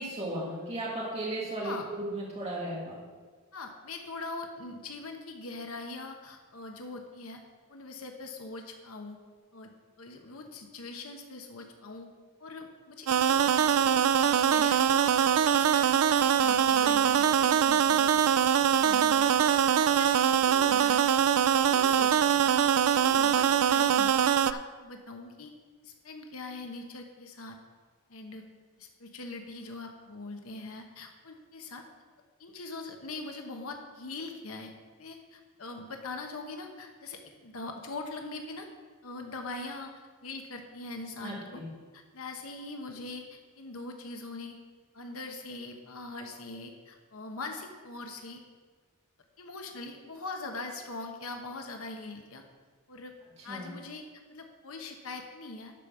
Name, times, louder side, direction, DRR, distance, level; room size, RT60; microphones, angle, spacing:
voice 1, 0.0-3.0 41.2-41.7 53.5-53.7, right 1 dB, 30° right, -5 dB, 1.8 m, -35 dB
voice 2, 3.5-7.4 7.7-9.2 9.5-9.7 10.0-12.1 12.4-21.1 21.6-22.4 22.9-25.5 25.8-27.6 28.1-28.4 28.8-31.8 32.4-34.7 35.0-38.7 39.0-41.6 41.9-44.6 44.9-48.4 49.4-52.4 52.9-53.1 53.4-54.0 54.3-55.7, left 3 dB, 75° left, 4 dB, 1.0 m, -42 dB
sound 1, 13.1-24.5, right 9 dB, 85° right, 0.4 m, -23 dB
12.0 x 5.2 x 6.1 m, 1.5 s
head